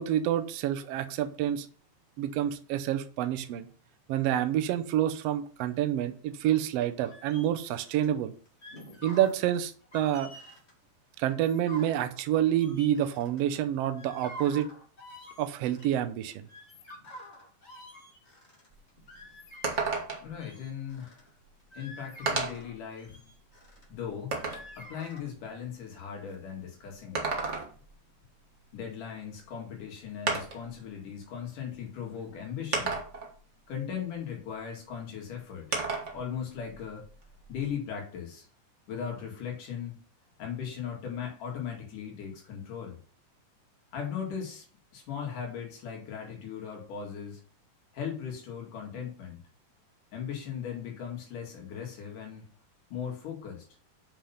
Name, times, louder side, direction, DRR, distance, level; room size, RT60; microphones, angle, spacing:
voice 1, 0.0-1.7 2.2-3.7 4.1-8.3 9.0-10.3 11.2-14.7 15.4-16.5, right 11 dB, 90° right, 8 dB, 1.4 m, -28 dB
sound 1, 7.0-8.1 8.5-9.4 9.8-10.7 11.3-13.6 14.0-16.0 16.3-20.1 20.4-21.2 21.6-23.8 24.3-25.2, equal, 20° left, 2.4 m, -48 dB
sound 2, 18.7-18.8 19.1-19.2 19.6-20.4 21.4-21.5 22.3-22.7 23.3-24.7 26.9-27.9 29.4-29.5 30.3-30.7 31.7-31.8 32.7-33.3 35.7-36.2 36.6-37.7, right 4 dB, 50° right, 0.8 m, -32 dB
voice 2, 20.2-21.3 21.7-23.3 23.9-24.4 24.8-27.4 28.7-33.0 33.7-35.7 36.1-37.1 37.5-38.5 38.9-40.0 40.4-43.0 43.9-44.7 44.9-47.4 47.9-49.4 50.1-52.5 52.9-53.7, left 8 dB, 75° left, 0 dB, 3.7 m, -38 dB
7.1 x 5.8 x 5.7 m, 0.42 s
omnidirectional pair, 3.8 m